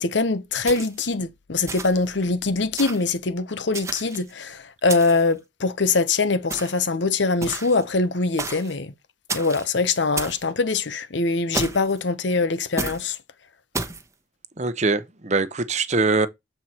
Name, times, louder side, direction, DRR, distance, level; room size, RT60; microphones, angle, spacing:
voice 1, 0.0-8.9 9.3-13.2, left 3 dB, 80° left, 0.9 m, -23 dB
sound 1, 0.7-1.1 1.7-2.1 2.8-3.1 3.7-4.3 4.9-5.3 6.5-6.9 7.4-7.8 8.4-8.7 9.3-9.7 10.2-10.4 11.5-12.0 12.8-13.0 13.7-14.0, right 3 dB, 15° right, 1.0 m, -31 dB
voice 2, 14.6-16.3, right 3 dB, 40° right, 0.8 m, -22 dB
7.7 x 4.5 x 4.3 m
head